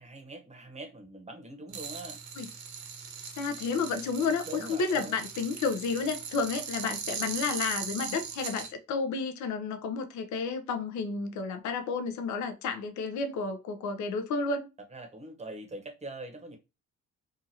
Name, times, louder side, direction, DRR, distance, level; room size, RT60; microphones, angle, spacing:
voice 1, 0.0-2.2 4.5-5.2 14.9-16.6, right 1 dB, 20° right, 0.8 m, -43 dB
sound 1, 1.7-8.7, right 6 dB, 65° right, 0.8 m, -39 dB
voice 2, 3.4-14.7, left 4 dB, 70° left, 0.6 m, -31 dB
2.7 x 2.5 x 2.7 m
cardioid pair, 90°, 30 cm